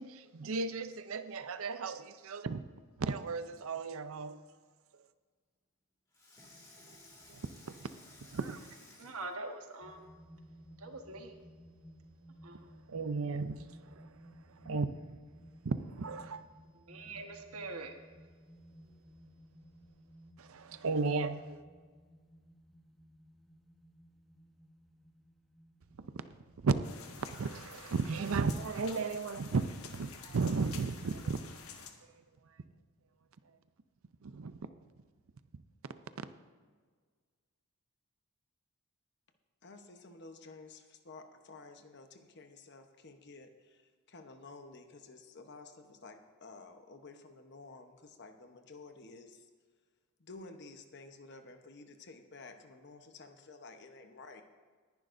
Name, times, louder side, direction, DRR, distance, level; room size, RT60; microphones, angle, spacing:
voice 1, 0.0-2.6 3.0-4.5 4.9-5.1 7.3-7.9 8.3-8.8 12.9-15.2 15.6-16.5 20.4-21.6 25.9-26.8 27.0-31.6 32.1-32.6 33.4-33.6 34.2-34.7 36.2-36.3, right 4 dB, 70° right, 11 dB, 0.5 m, -35 dB
Water tap faucet / Sink (filling or washing), 3.2-3.8 6.1-10.1 10.7-10.8, left 1 dB, 15° left, 2.5 m, -58 dB
voice 2, 9.0-10.1 10.8-11.4 12.4-12.7 16.9-17.9, right 2 dB, 85° right, 4 dB, 1.4 m, -44 dB
sound 1, 9.8-29.7, equal, ahead, 0.9 m, -58 dB
sound 2, 26.8-31.9, left 6 dB, 75° left, 1.3 m, -50 dB
voice 3, 39.6-43.8 44.1-49.5 50.2-54.4, left 3 dB, 50° left, 6 dB, 1.0 m, -52 dB
19.5 x 10.5 x 2.6 m, 1.6 s
head